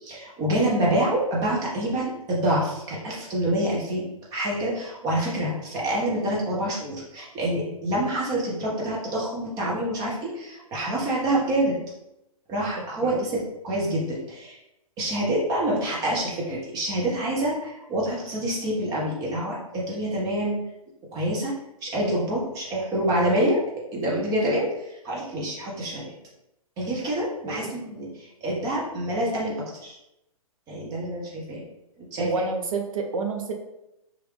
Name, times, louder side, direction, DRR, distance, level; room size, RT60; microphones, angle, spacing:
voice 1, 0.0-4.0 4.3-11.8 12.5-14.6 15.0-20.6 21.1-21.5 21.8-23.6 23.9-24.7 25.0-26.1 26.8-29.6 29.8-30.0 30.7-31.6 32.0-32.3, right 1 dB, 20° right, -5 dB, 0.7 m, -26 dB
voice 2, 13.0-13.4 27.4-27.8 32.2-33.5, right 3 dB, 65° right, 3 dB, 0.6 m, -29 dB
3.0 x 2.5 x 3.1 m, 0.87 s
hypercardioid pair, 135°, 19 cm